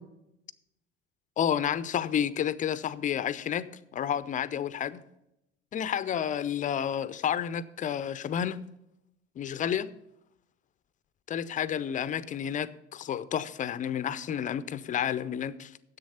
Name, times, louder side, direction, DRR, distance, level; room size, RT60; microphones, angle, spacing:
voice 1, 1.4-5.0 5.7-8.7 9.4-9.9 11.3-15.7, left 9 dB, 25° left, 0.5 m, -30 dB
10.0 x 7.9 x 5.6 m
figure-of-eight pair, 60°, 34 cm